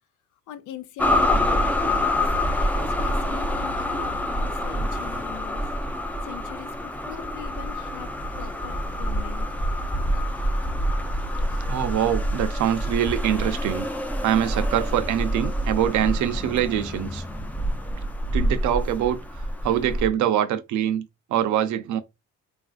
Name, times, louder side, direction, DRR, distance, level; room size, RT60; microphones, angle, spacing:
voice 1, 0.5-2.2 2.6-5.7 6.2-9.5, left 11 dB, 80° left, 0.6 m, -41 dB
sound 1, 1.0-20.1, equal, 5° left, 0.4 m, -26 dB
voice 2, 11.7-13.9 14.2-17.2 18.3-22.0, right 10 dB, 75° right, 0.5 m, -24 dB
3.4 x 2.4 x 2.4 m
cardioid pair, 90°, 30 cm